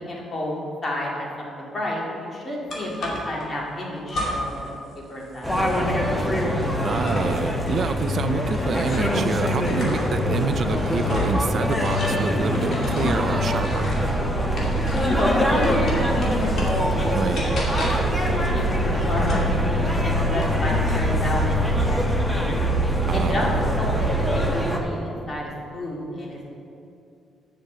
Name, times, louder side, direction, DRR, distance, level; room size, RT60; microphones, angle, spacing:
voice 1, 0.1-0.6 0.8-4.7 5.0-5.7 15.2-22.0 22.3-22.7 23.1-24.1 24.3-26.5, left 1 dB, 40° left, -3 dB, 2.3 m, -30 dB
sound 1, 2.7-3.5 4.1-4.7 5.0-9.2 9.6-15.2 15.6-16.9 17.3-18.2 19.2-20.6 20.9-21.5, left 1 dB, 60° left, 2.5 m, -33 dB
sound 2, 5.4-24.8, left 1 dB, 10° left, 1.2 m, -24 dB
voice 2, 6.8-13.9 17.1-17.4 23.1-23.5, right 5 dB, 55° right, 9 dB, 0.4 m, -27 dB
sound 3, 13.1-24.5, right 4 dB, 80° right, 1.0 m, -27 dB
7.7 x 6.8 x 6.9 m, 2.7 s
cardioid pair, 90°, 0 cm